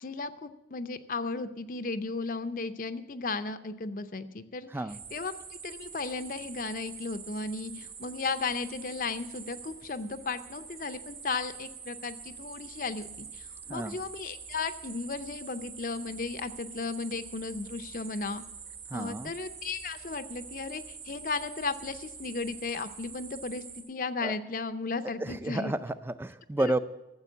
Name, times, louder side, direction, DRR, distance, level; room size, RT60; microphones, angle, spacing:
voice 1, 0.0-4.7 5.1-5.3 5.6-18.4 18.9-25.7 26.6-26.7, left 4 dB, 50° left, 10 dB, 0.6 m, -35 dB
sound 1, 4.9-23.8, right 6 dB, 65° right, 4.0 m, -45 dB
voice 2, 18.9-19.3 24.2-24.3 25.2-26.8, right 1 dB, 15° right, 13 dB, 0.4 m, -31 dB
13.5 x 7.6 x 8.3 m, 0.94 s
head